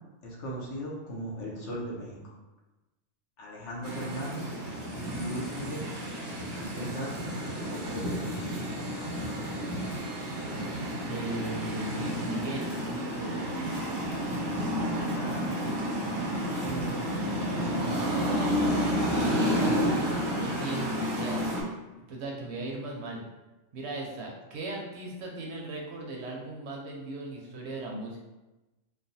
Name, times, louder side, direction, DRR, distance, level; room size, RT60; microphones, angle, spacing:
voice 1, 0.2-2.2 3.4-4.5 5.1-5.9 6.5-7.3 7.7-8.4 15.1-15.6 16.6-18.0, equal, 70° left, -3 dB, 1.0 m, -38 dB
sound 1, 3.8-21.6, equal, 40° right, 0.3 m, -31 dB
voice 2, 11.1-13.5 18.7-21.5 22.1-23.2 23.7-28.2, right 2 dB, 65° right, -1 dB, 0.7 m, -38 dB
3.1 x 2.1 x 2.6 m, 1.1 s
omnidirectional pair, 1.3 m